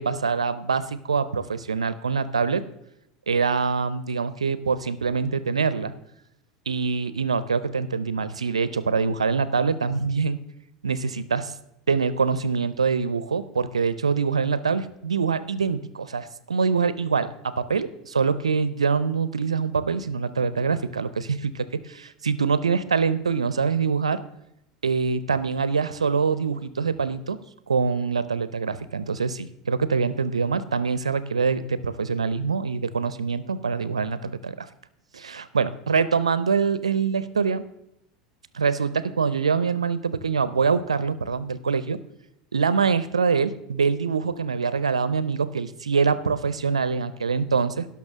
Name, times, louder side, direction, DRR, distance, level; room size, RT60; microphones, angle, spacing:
voice 1, 0.0-2.6 3.3-5.9 6.7-10.4 10.8-11.5 11.9-24.2 24.8-27.4 27.7-34.7 35.1-37.6 38.5-42.0 42.5-47.9, right 5 dB, 85° right, 15 dB, 0.6 m, -24 dB
17.5 x 5.9 x 3.6 m, 0.82 s
hypercardioid pair, 80°, 3 cm